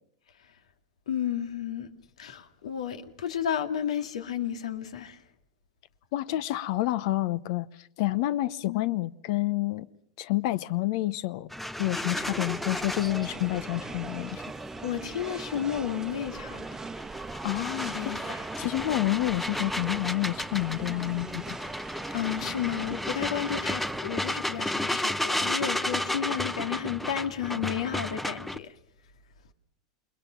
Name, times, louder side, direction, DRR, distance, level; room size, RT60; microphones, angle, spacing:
voice 1, 1.1-1.9 2.2-5.2 8.6-8.8 14.8-16.6 17.9-18.5 22.1-28.7, left 9 dB, 85° left, 2.3 m, -32 dB
voice 2, 6.1-9.9 10.2-11.5 11.8-14.4 17.4-21.6, left 17 dB, 60° left, 0.8 m, -29 dB
sound 1, 11.5-28.6, left 1 dB, 5° left, 0.8 m, -34 dB
sound 2, 12.1-24.0, right 4 dB, 15° right, 1.1 m, -41 dB
28.5 x 21.5 x 5.9 m
hypercardioid pair, 110°, 3 cm